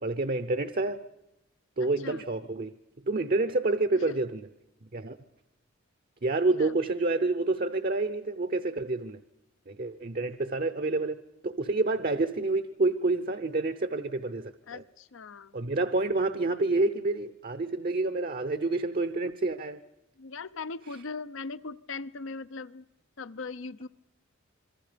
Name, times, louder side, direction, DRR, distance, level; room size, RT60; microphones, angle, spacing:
voice 1, 0.0-1.0 1.8-2.7 3.1-4.5 4.9-5.2 6.2-9.2 9.7-11.2 11.4-14.8 15.5-19.8, right 2 dB, 45° right, 11 dB, 0.7 m, -28 dB
voice 2, 1.8-2.2 4.1-4.2 6.6-6.7 10.2-10.3 14.7-15.6 20.2-22.8 23.2-23.9, left 4 dB, 70° left, 15 dB, 0.7 m, -40 dB
27.0 x 22.5 x 5.1 m, 0.89 s
head